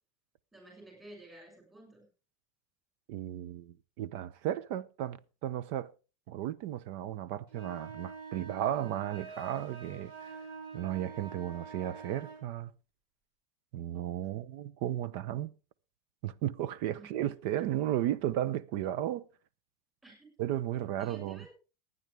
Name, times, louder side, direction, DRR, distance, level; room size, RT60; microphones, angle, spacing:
voice 1, 0.5-2.1 17.0-17.3 17.6-18.0 20.0-20.3 21.0-21.5, right 1 dB, 15° right, 6.7 m, -53 dB
voice 2, 3.1-5.9 6.3-10.4 10.7-12.7 13.7-15.5 16.2-19.2 20.4-21.4, right 12 dB, 60° right, 0.7 m, -34 dB
sound 1, 7.5-12.4, right 5 dB, 75° right, 6.5 m, -46 dB
21.5 x 9.5 x 3.4 m
supercardioid pair, 160°, 0 cm